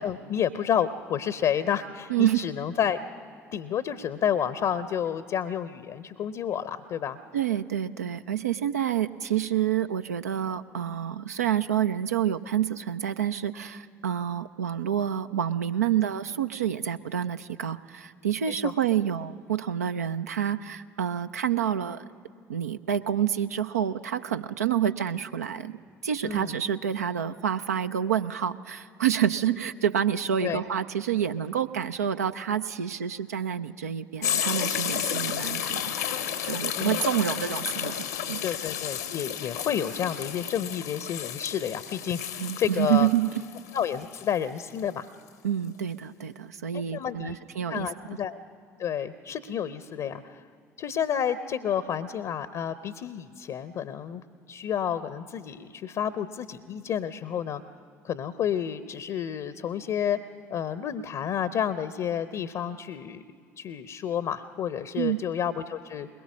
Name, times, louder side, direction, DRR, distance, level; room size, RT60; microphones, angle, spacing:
voice 1, 0.0-3.0 3.5-7.2 18.5-18.7 26.2-26.6 30.4-30.6 36.7-37.0 38.4-43.1 43.7-45.1 46.7-47.4 47.7-48.4 48.8-50.4 50.8-57.6 58.0-60.2 60.5-63.2 63.6-66.1, left 9 dB, 45° left, 14 dB, 0.7 m, -30 dB
voice 2, 2.1-2.4 7.3-22.1 22.5-25.8 26.0-35.9 36.4-38.4 42.4-43.4 45.4-48.2 64.9-65.2, right 9 dB, 75° right, 9 dB, 0.4 m, -28 dB
sound 1, 34.2-44.8 45.3-45.4, left 9 dB, 75° left, 1.0 m, -32 dB
21.5 x 21.0 x 6.2 m, 2.2 s
figure-of-eight pair, 55°, 8 cm